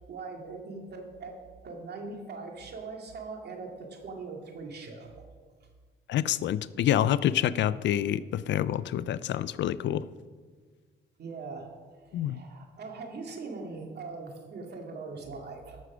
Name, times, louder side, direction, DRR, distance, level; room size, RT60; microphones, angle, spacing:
voice 1, 0.1-5.3 11.2-15.8, right 4 dB, 55° right, 2 dB, 2.3 m, -41 dB
voice 2, 6.1-10.0 12.1-12.4, left 11 dB, 65° left, 17 dB, 0.4 m, -27 dB
13.5 x 6.3 x 6.1 m, 1.5 s
cardioid pair, 90°, 20 cm